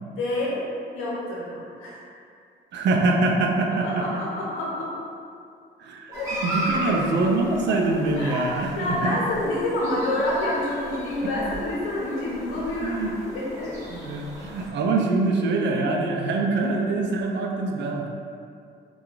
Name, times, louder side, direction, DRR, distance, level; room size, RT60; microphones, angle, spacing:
voice 1, 0.2-0.6 0.9-2.0 3.8-4.9 6.1-6.3 6.7-7.0 8.1-13.1 13.3-13.8 15.0-15.1, left 1 dB, 85° left, -6 dB, 0.7 m, -28 dB
voice 2, 2.7-4.1 5.8-9.2 12.8-13.1 13.9-18.1, right 2 dB, 65° right, 1 dB, 0.4 m, -24 dB
sound 1, 6.1-14.7, right 1 dB, 15° right, 0.9 m, -35 dB
2.9 x 2.3 x 2.4 m, 2.4 s
cardioid pair, 90°, 20 cm